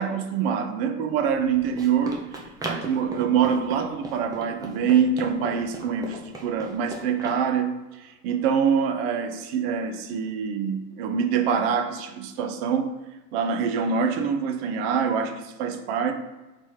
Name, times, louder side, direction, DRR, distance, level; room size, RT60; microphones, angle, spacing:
voice 1, 0.0-2.2 2.7-7.7 8.0-12.9 13.3-16.1, right 7 dB, 40° right, 6 dB, 0.7 m, -25 dB
Run, 1.2-7.4, right 2 dB, 10° right, 0.6 m, -38 dB
4.0 x 3.1 x 3.8 m, 1.1 s
figure-of-eight pair, 95°, 45 cm